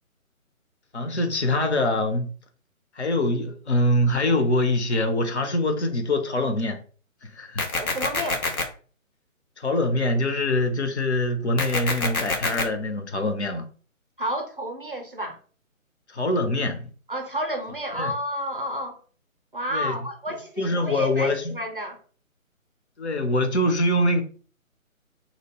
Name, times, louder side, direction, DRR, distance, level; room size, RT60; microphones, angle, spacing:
voice 1, 0.9-2.3 3.0-6.8 7.2-7.7 9.6-13.7 16.1-16.9 18.0-18.1 19.7-19.9 20.6-21.5 23.0-24.2, left 1 dB, 55° left, 0.6 m, -24 dB
sound 1, 7.6-8.6 11.6-12.6, left 3 dB, 85° left, 0.9 m, -26 dB
voice 2, 7.7-8.4 14.2-15.4 17.1-19.0 19.5-22.0, equal, 40° right, 0.4 m, -31 dB
2.8 x 2.3 x 2.9 m
figure-of-eight pair, 145°, 42 cm